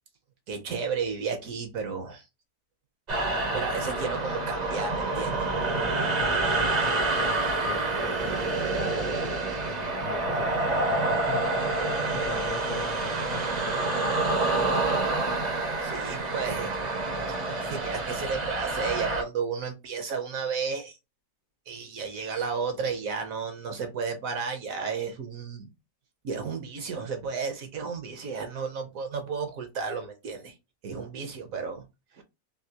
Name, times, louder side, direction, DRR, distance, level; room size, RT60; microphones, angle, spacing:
voice 1, 0.5-2.3 3.5-5.3 15.8-16.8 17.6-21.0 21.7-25.7 26.2-30.5 30.8-31.8 32.1-32.2, right 5 dB, 65° right, 1.0 m, -33 dB
sound 1, 3.1-19.2, right 2 dB, 45° right, 0.5 m, -27 dB
voice 2, 6.2-14.8, left 6 dB, 70° left, 1.0 m, -42 dB
3.6 x 2.3 x 2.7 m
omnidirectional pair, 1.8 m